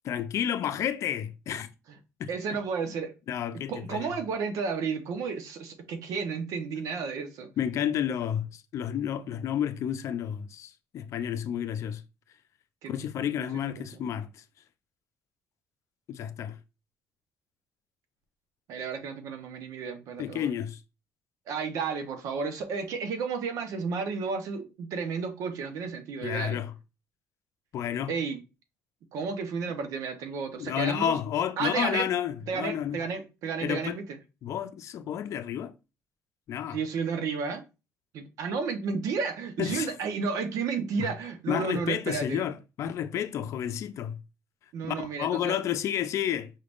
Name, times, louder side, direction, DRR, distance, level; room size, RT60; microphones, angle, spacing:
voice 1, 0.0-1.7 2.2-2.3 3.3-4.1 7.6-12.0 12.9-14.4 16.1-16.6 20.2-20.8 26.2-26.7 27.7-28.1 30.6-33.0 33.6-34.0 34.4-35.7 36.5-36.8 39.6-39.9 41.0-41.1 41.5-44.2 44.9-46.5, left 9 dB, 65° left, 0.5 m, -31 dB
voice 2, 2.3-3.1 3.7-7.5 12.8-13.3 13.8-13.9 18.7-20.5 21.5-26.6 28.1-28.4 29.1-31.2 31.6-32.1 32.5-34.0 36.7-37.6 38.1-42.5 44.7-45.6, right 5 dB, 75° right, 0.9 m, -32 dB
5.7 x 3.4 x 2.5 m
cardioid pair, 105°, 6 cm